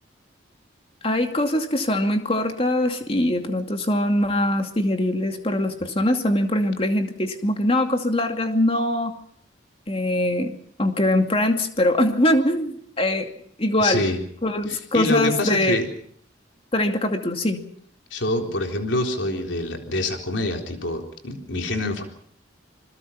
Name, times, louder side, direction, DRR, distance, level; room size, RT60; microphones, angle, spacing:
voice 1, 1.0-9.2 9.9-13.3 13.6-14.1 14.4-15.8 16.7-17.6, left 1 dB, 30° left, 5 dB, 2.5 m, -22 dB
voice 2, 13.8-14.2 14.7-15.9 18.1-22.0, left 2 dB, 75° left, 3 dB, 3.9 m, -26 dB
27.5 x 21.0 x 5.9 m, 0.63 s
head